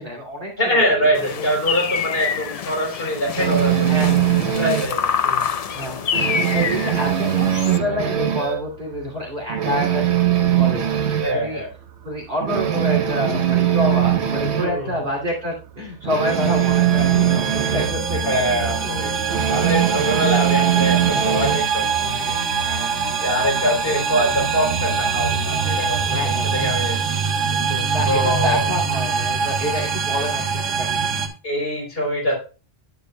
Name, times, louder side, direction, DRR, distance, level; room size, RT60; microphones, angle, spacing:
voice 1, 0.0-0.9 1.3-1.8 3.9-4.4 5.5-11.6 12.0-18.5 18.8-19.2 22.6-23.1 26.1-26.6 27.7-31.2, left 1 dB, 40° right, -2 dB, 2.7 m, -28 dB
voice 2, 0.6-4.2 4.4-5.5 11.2-11.7 14.6-15.0 18.3-19.1 19.5-22.7 23.2-27.0 27.5-28.7 31.4-32.4, equal, 50° left, -1 dB, 3.7 m, -24 dB
sound 1, 1.1-7.8, left 7 dB, 65° left, 0.3 m, -26 dB
sound 2, 3.4-5.0 5.4-5.6 5.9-8.7 9.0-9.1 9.5-11.4 11.9-12.0 12.4-14.8 16.0-18.0 19.3-21.7, right 10 dB, 65° right, 1.1 m, -20 dB
sound 3, 16.3-31.3, right 5 dB, 80° right, 1.6 m, -23 dB
9.6 x 8.9 x 2.2 m, 0.33 s
omnidirectional pair, 1.3 m